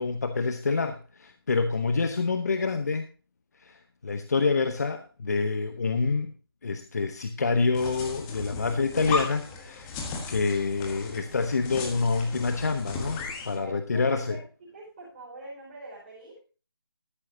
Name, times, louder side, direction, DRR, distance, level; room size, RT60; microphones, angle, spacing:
voice 1, 0.0-3.1 3.6-6.3 6.6-10.0 10.3-14.4, left 4 dB, 45° left, 8 dB, 0.8 m, -27 dB
sound 1, 7.7-13.6, left 4 dB, 10° left, 1.3 m, -36 dB
voice 2, 13.5-16.4, right 2 dB, 25° right, -6 dB, 5.5 m, -45 dB
13.0 x 12.0 x 2.8 m, 0.36 s
figure-of-eight pair, 155°, 13 cm